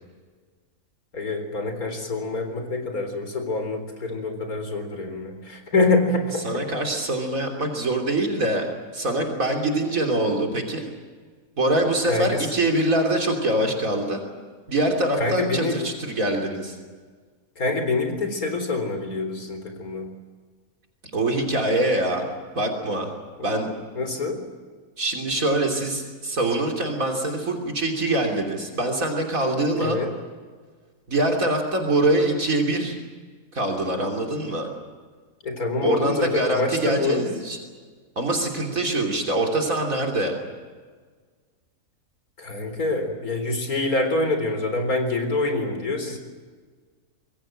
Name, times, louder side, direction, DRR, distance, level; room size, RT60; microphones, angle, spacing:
voice 1, 1.1-6.6 12.1-12.4 15.2-15.8 17.6-20.1 23.4-23.5 23.9-24.4 29.8-30.1 35.4-37.2 42.4-46.2, left 3 dB, 90° left, 6 dB, 4.4 m, -26 dB
voice 2, 6.4-8.7 8.9-10.9 11.6-14.2 14.7-16.8 21.1-22.2 22.6-23.1 23.4-23.7 25.0-30.0 31.1-33.0 33.5-34.7 35.8-37.6 38.2-40.3, right 1 dB, 70° right, 2 dB, 3.6 m, -24 dB
26.0 x 22.0 x 7.6 m, 1.5 s
omnidirectional pair, 1.5 m